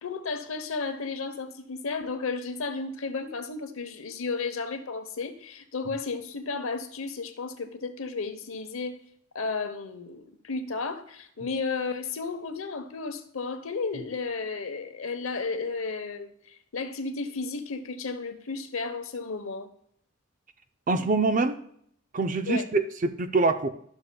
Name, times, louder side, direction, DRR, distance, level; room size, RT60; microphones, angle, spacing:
voice 1, 0.0-9.0 9.3-19.7 22.5-22.7, left 4 dB, 85° left, 0.8 m, -33 dB
voice 2, 20.9-21.6 22.1-22.9 23.2-23.7, right 3 dB, 40° right, 0.5 m, -24 dB
12.5 x 6.2 x 2.2 m
head